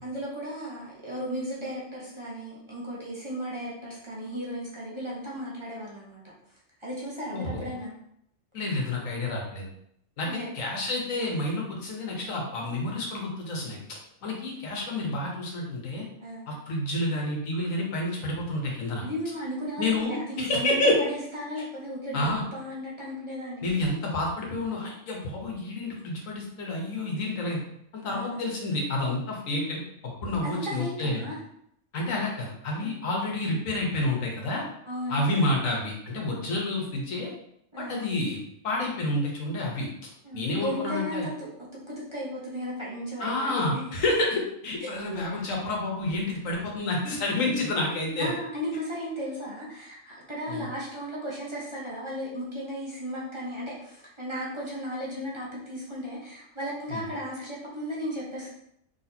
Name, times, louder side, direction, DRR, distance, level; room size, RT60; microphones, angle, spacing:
voice 1, 0.0-6.2 6.8-7.9 10.2-10.5 16.2-16.5 19.0-23.6 28.0-28.6 30.4-31.4 32.8-32.9 34.9-35.5 36.2-36.6 37.7-38.2 40.2-43.8 44.8-45.2 48.2-58.5, equal, 25° right, -6 dB, 1.0 m, -35 dB
voice 2, 7.3-7.7 8.5-9.7 10.2-16.0 16.5-19.0 19.8-21.0 22.1-22.4 23.6-27.6 27.9-29.8 30.2-31.2 31.9-34.6 35.1-37.3 37.9-38.4 38.6-41.3 43.2-48.3 50.5-50.7 56.9-57.0, left 2 dB, 90° left, -1 dB, 1.4 m, -29 dB
4.1 x 3.5 x 2.8 m, 0.74 s
omnidirectional pair, 1.3 m